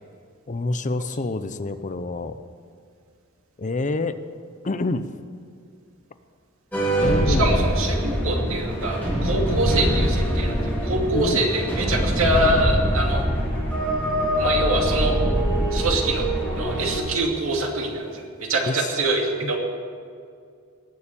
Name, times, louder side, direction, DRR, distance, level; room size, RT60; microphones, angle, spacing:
voice 1, 0.5-2.4 3.6-4.2 4.6-5.1 7.0-7.6 11.1-11.4 18.6-18.9 19.4-19.6, left 2 dB, 35° left, 11 dB, 0.6 m, -27 dB
sound 1, 6.7-17.0, equal, 10° left, 3.7 m, -23 dB
voice 2, 7.3-13.2 14.4-15.1 15.7-16.2 16.6-19.6, right 2 dB, 75° right, 1 dB, 2.5 m, -25 dB
19.0 x 7.1 x 8.6 m, 2.2 s
head